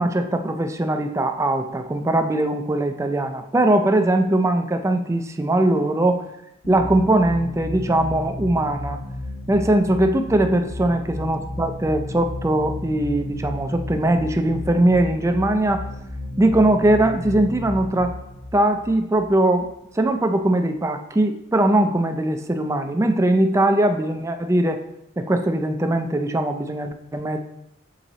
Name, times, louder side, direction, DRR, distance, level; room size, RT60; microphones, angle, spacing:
voice 1, 0.0-6.2 6.7-9.0 9.5-15.9 16.4-18.1 18.5-19.7 20.0-24.8 25.2-27.4, right 1 dB, 15° right, 6 dB, 0.4 m, -20 dB
sound 1, 6.6-19.9, left 1 dB, 85° left, 2.4 m, -33 dB
6.2 x 3.8 x 4.0 m, 0.82 s
head